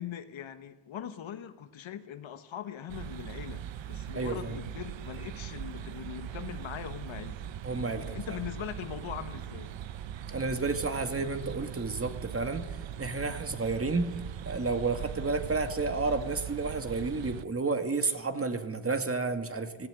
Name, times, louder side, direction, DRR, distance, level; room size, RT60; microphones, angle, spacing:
voice 1, 0.0-7.5 7.9-9.7, left 9 dB, 75° left, 9 dB, 1.6 m, -41 dB
sound 1, 2.9-17.5, right 10 dB, 70° right, 0.9 m, -40 dB
voice 2, 4.1-4.6 7.6-8.4 10.3-12.7 13.0-14.2 14.5-19.9, right 3 dB, 30° right, 7 dB, 2.0 m, -31 dB
18.0 x 15.5 x 9.6 m, 1.1 s
cardioid pair, 95°, 47 cm